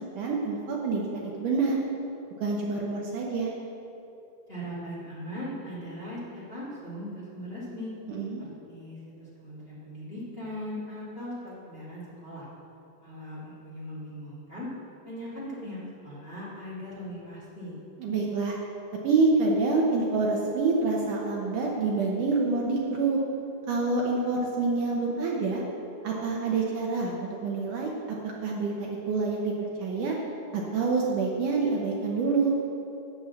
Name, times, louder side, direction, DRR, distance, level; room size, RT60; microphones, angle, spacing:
voice 1, 0.2-1.8 2.4-3.5 8.1-8.4 18.0-18.6 19.0-23.2 23.7-25.6 26.0-27.1 27.4-27.9 28.4-29.5 29.8-30.2 30.5-32.5, right 3 dB, 75° right, -2 dB, 1.9 m, -27 dB
voice 2, 4.5-7.9 8.4-12.5 13.0-14.7 15.0-15.8 16.0-17.8, equal, 35° left, -8 dB, 1.0 m, -39 dB
8.5 x 8.2 x 7.1 m, 2.8 s
omnidirectional pair, 4.9 m